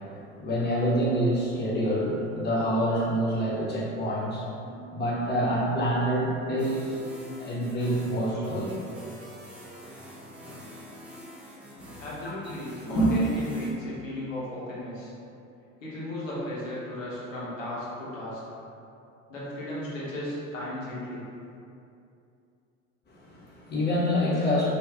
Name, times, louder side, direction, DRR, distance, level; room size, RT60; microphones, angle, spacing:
voice 1, 0.0-7.0 7.4-8.8 11.9-12.1 12.8-13.1 23.1-24.7, equal, 25° left, -7 dB, 0.9 m, -27 dB
sound 1, 6.6-13.7, equal, 5° right, 0.4 m, -46 dB
voice 2, 12.0-15.1 15.8-18.4 19.3-21.3, left 1 dB, 70° left, -7 dB, 1.1 m, -35 dB
2.5 x 2.4 x 3.4 m, 2.6 s
figure-of-eight pair, 70°, 40 cm